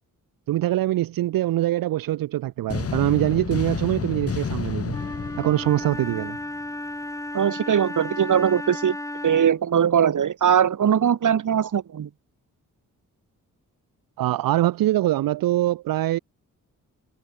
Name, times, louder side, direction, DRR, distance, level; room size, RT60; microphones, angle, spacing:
voice 1, 0.5-5.0 5.4-6.4 14.2-16.2, right 14 dB, 90° right, 0.5 m, -23 dB
sound 1, 2.7-6.7, left 6 dB, 45° left, 1.2 m, -31 dB
Wind instrument woodwind instrument, 4.9-9.7, left 1 dB, 10° left, 1.6 m, -34 dB
voice 2, 7.3-9.0 9.2-12.1, right 8 dB, 65° right, 1.4 m, -21 dB
cardioid pair, 70°, 33 cm